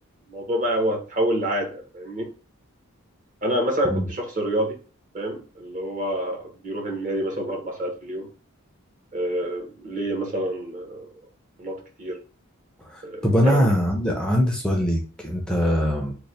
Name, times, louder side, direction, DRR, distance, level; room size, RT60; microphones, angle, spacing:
voice 1, 0.3-2.3 3.4-4.8 5.1-8.3 9.1-11.1 11.6-12.2 13.0-13.7, right 1 dB, 40° right, 1 dB, 0.9 m, -27 dB
voice 2, 12.8-16.1, equal, 5° left, 0 dB, 0.5 m, -22 dB
3.2 x 2.1 x 4.0 m, 0.36 s
head